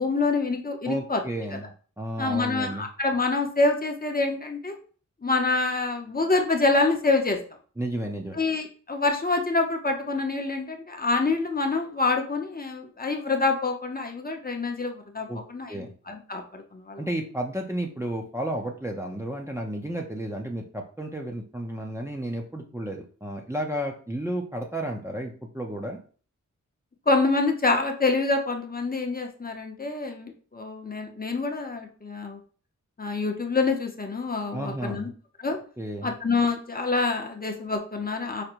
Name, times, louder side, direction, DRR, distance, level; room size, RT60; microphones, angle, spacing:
voice 1, 0.0-1.2 1.5-1.6 2.2-4.8 5.2-7.4 8.4-17.0 27.1-32.4 33.0-35.1 35.4-35.6 36.0-38.4, left 3 dB, 30° left, 3 dB, 0.7 m, -26 dB
voice 2, 0.9-2.9 7.8-8.4 15.3-15.4 15.7-15.9 17.0-26.0 34.5-35.1 35.8-36.1, right 1 dB, 10° right, 0 dB, 0.6 m, -32 dB
5.0 x 2.1 x 4.4 m, 0.41 s
wide cardioid pair, 110°, 31 cm